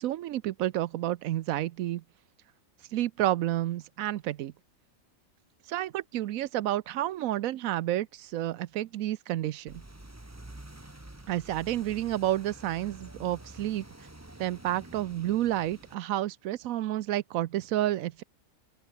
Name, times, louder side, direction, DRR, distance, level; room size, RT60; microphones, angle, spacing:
voice 1, 0.0-2.0 2.9-4.5 5.7-9.8 11.3-13.9 14.4-18.2, right 13 dB, 80° right, 1.0 m, -30 dB
sound 1, 9.7-16.0, right 1 dB, 10° right, 1.4 m, -48 dB
open air
omnidirectional pair, 1.4 m